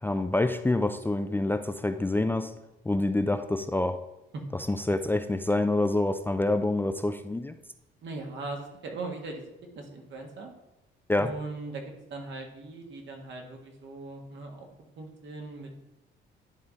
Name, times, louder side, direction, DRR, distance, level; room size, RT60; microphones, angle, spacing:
voice 1, 0.0-2.5 2.9-4.0 4.5-7.5 11.1-11.3, left 2 dB, 10° left, 8 dB, 0.4 m, -27 dB
voice 2, 8.0-10.5 11.2-11.8 12.1-14.7 15.0-15.7, right 3 dB, 65° right, 2 dB, 1.6 m, -39 dB
10.5 x 3.6 x 4.0 m, 0.95 s
cardioid pair, 90°, 20 cm